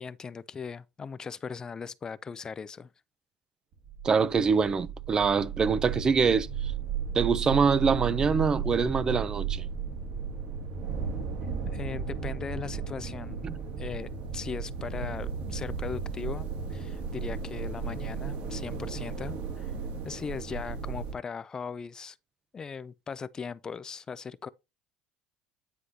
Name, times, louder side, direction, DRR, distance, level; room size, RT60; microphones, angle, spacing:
voice 1, 0.0-2.9 11.7-13.4 13.8-19.7 20.0-22.2 22.5-24.5, left 6 dB, 25° left, 0.4 m, -39 dB
sound 1, 3.7-21.1, right 6 dB, 60° right, 2.1 m, -34 dB
voice 2, 4.0-6.7 7.1-9.7 13.4-13.6, right 5 dB, 25° right, 0.5 m, -25 dB
9.7 x 4.9 x 2.7 m
cardioid pair, 125°, 3 cm